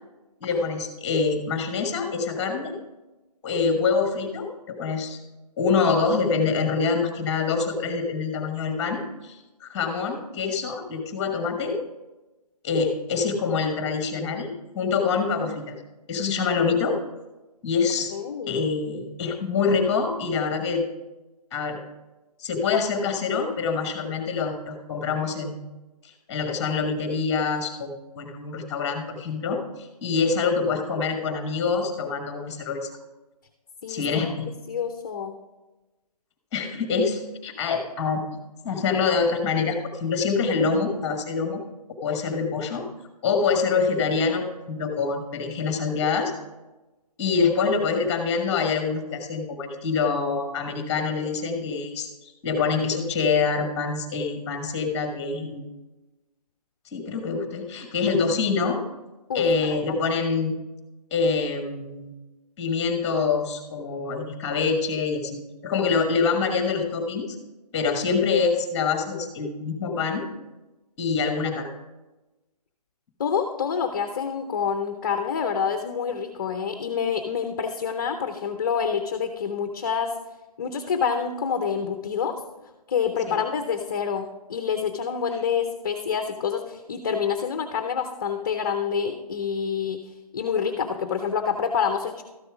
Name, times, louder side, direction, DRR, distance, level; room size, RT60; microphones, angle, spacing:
voice 1, 0.4-2.7 3.4-5.2 5.6-11.8 12.6-15.7 16.1-17.0 17.6-18.1 18.5-20.8 21.5-21.8 22.4-25.6 26.0-32.9 33.9-34.5 36.5-38.2 38.6-41.6 42.0-42.8 43.2-46.3 47.2-55.7 56.9-58.8 59.3-60.6 61.1-62.1 62.6-67.4 67.7-70.2 71.0-71.7 83.3-83.4, left 5 dB, 15° left, 5 dB, 1.2 m, -25 dB
voice 2, 18.1-18.7 33.8-34.0 34.7-35.4 59.3-59.4 59.9-60.0 73.2-80.1 80.6-82.4 82.9-90.0 90.3-92.2, left 6 dB, 30° left, 7 dB, 0.6 m, -27 dB
13.0 x 6.9 x 4.9 m, 1.1 s
hypercardioid pair, 160°, 20 cm